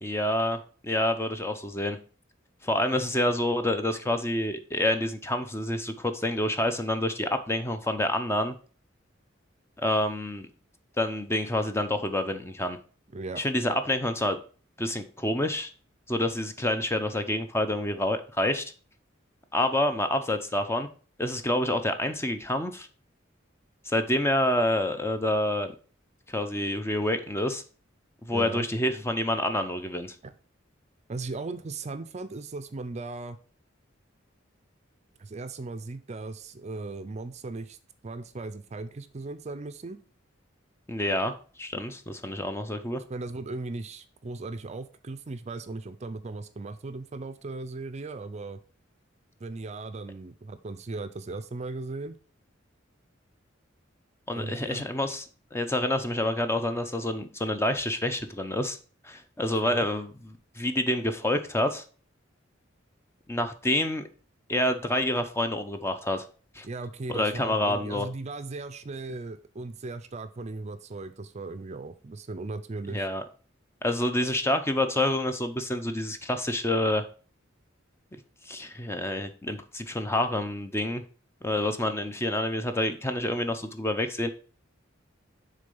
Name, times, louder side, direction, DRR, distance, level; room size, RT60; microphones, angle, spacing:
voice 1, 0.0-2.0 2.6-8.6 9.8-10.5 11.0-12.8 13.4-14.4 14.8-15.7 16.1-18.7 19.5-20.9 21.2-22.9 23.9-25.7 26.3-27.6 28.2-30.1 40.9-41.3 41.6-43.0 54.3-55.3 55.5-58.8 59.0-61.8 63.3-64.0 64.5-66.2 66.5-66.7 67.1-68.1 72.9-73.2 73.8-77.0 78.5-81.0 81.4-84.3, left 1 dB, 15° left, 8 dB, 0.6 m, -28 dB
voice 2, 28.3-28.7 30.2-30.3 31.1-33.4 35.2-37.8 38.0-40.0 43.1-48.6 49.4-52.2 54.3-54.8 59.6-59.9 66.6-73.1, right 3 dB, 35° right, 11 dB, 0.5 m, -37 dB
6.6 x 3.8 x 5.4 m, 0.39 s
head